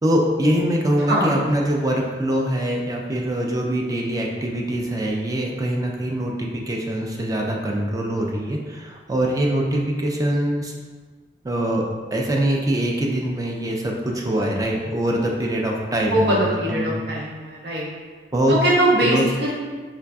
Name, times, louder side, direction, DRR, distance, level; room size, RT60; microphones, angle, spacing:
voice 1, 0.0-10.7 11.4-11.8 12.1-17.0 18.3-18.6 19.0-19.3, right 1 dB, 20° right, -1 dB, 0.4 m, -23 dB
voice 2, 1.1-1.4 16.1-17.9 18.5-19.5, right 1 dB, 70° right, -4 dB, 0.7 m, -21 dB
4.7 x 2.5 x 2.2 m, 1.4 s
head